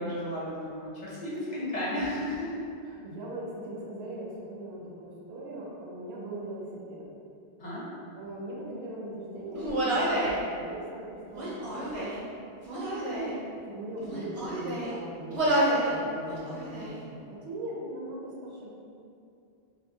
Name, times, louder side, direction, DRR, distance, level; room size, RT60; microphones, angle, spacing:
voice 1, 0.0-2.5 7.6-7.9, left 1 dB, 50° left, -8 dB, 0.7 m, -33 dB
voice 2, 2.8-7.1 8.1-10.2 10.5-11.0 11.3-12.4 13.1-13.4 13.6-18.7, right 1 dB, 80° right, -4 dB, 0.9 m, -40 dB
Human voice, 9.6-10.4 11.3-12.2 12.6-13.3 14.0-14.9 15.3-15.9 16.3-16.9, right 1 dB, 45° right, 0.5 m, -29 dB
2.6 x 2.5 x 2.6 m, 2.5 s
omnidirectional pair, 1.1 m